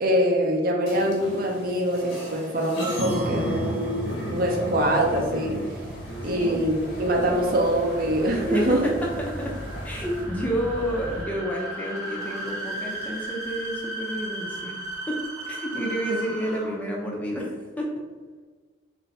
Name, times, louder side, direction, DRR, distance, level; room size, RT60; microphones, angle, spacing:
voice 1, 0.0-5.6 6.2-8.9 16.1-16.2, equal, 45° right, 1 dB, 0.5 m, -24 dB
sound 1, 0.9-10.2, right 1 dB, 75° left, 1.3 m, -34 dB
sound 2, 4.4-11.2, equal, 45° left, 0.8 m, -39 dB
voice 2, 6.2-6.6 8.5-8.9 9.3-9.5 9.8-14.7 15.1-15.2 15.5-17.9, equal, 5° left, -2 dB, 0.4 m, -30 dB
sound 3, 6.3-17.0, right 2 dB, 15° right, 0.8 m, -36 dB
3.2 x 2.6 x 4.0 m, 1.4 s
head